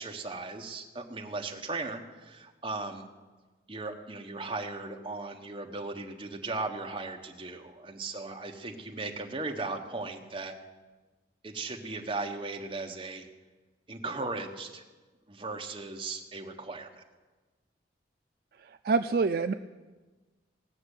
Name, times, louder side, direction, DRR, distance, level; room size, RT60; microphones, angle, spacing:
voice 1, 0.0-3.1 3.7-10.5 11.4-13.3 13.9-14.8 15.3-17.0, right 3 dB, 25° right, 2 dB, 1.2 m, -37 dB
voice 2, 18.8-19.5, right 4 dB, 55° right, 9 dB, 0.4 m, -25 dB
18.5 x 6.6 x 8.3 m, 1.3 s
head